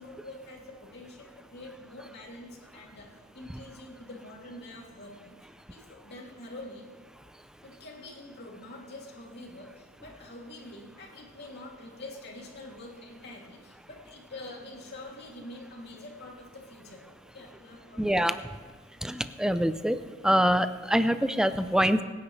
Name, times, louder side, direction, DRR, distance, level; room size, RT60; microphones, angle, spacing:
voice 1, 0.0-3.1 3.3-6.9 7.6-18.1, left 2 dB, 55° left, -2 dB, 2.7 m, -46 dB
voice 2, 18.0-18.4 19.0-20.0 20.2-22.0, equal, 5° right, 11 dB, 0.4 m, -24 dB
23.5 x 9.9 x 3.2 m, 1.5 s
head